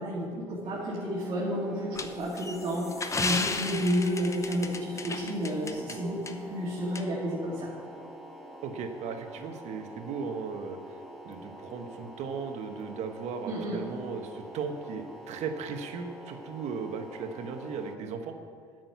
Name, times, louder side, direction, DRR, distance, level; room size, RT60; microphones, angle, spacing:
voice 1, 0.0-7.7 13.4-13.8, equal, 40° right, -6 dB, 2.3 m, -31 dB
sound 1, 0.6-18.0, equal, ahead, 1.2 m, -46 dB
sound 2, 2.0-6.0 6.3-6.4 7.0-7.1, left 4 dB, 25° left, 0.8 m, -33 dB
voice 2, 8.6-10.8 11.2-18.3, right 5 dB, 65° right, 6 dB, 1.1 m, -37 dB
8.8 x 6.3 x 8.3 m, 2.1 s
supercardioid pair, 85°, 13 cm